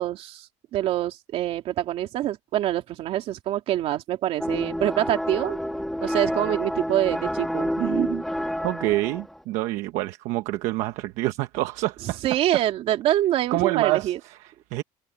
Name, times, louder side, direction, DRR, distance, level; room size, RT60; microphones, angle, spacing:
voice 1, 0.0-5.6 6.0-8.2 12.2-14.2, right 13 dB, 55° right, 3.1 m, -25 dB
sound 1, 4.4-9.4, equal, ahead, 2.5 m, -29 dB
voice 2, 8.6-12.6 13.5-14.8, right 18 dB, 80° right, 1.1 m, -27 dB
cardioid pair, 155°, 12 cm